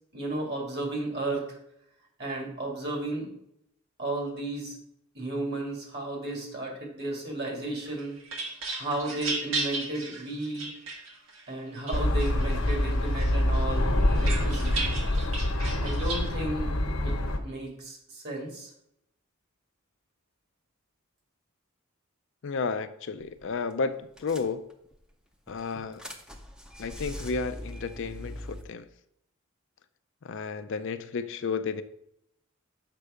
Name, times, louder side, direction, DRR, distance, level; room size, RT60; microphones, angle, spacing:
voice 1, 0.1-1.4 2.2-3.3 4.0-4.8 5.1-8.2 8.8-10.7 11.5-15.0 15.8-16.7 17.0-17.2 17.4-18.7, right 2 dB, 50° right, 2.3 m, -33 dB
sound 1, 7.9-11.4 11.9-12.8 13.2-16.3, right 3 dB, 70° right, 1.5 m, -35 dB
sound 2, 11.9-17.4, left 1 dB, 85° left, 1.0 m, -26 dB
voice 2, 22.4-24.6 25.5-26.0 26.8-28.9 30.2-31.8, left 4 dB, 55° left, 0.4 m, -32 dB
sound 3, 23.2-23.4 23.7-23.8 24.2-25.0 25.5-28.6, equal, 5° right, 0.6 m, -42 dB
6.7 x 5.4 x 4.9 m
head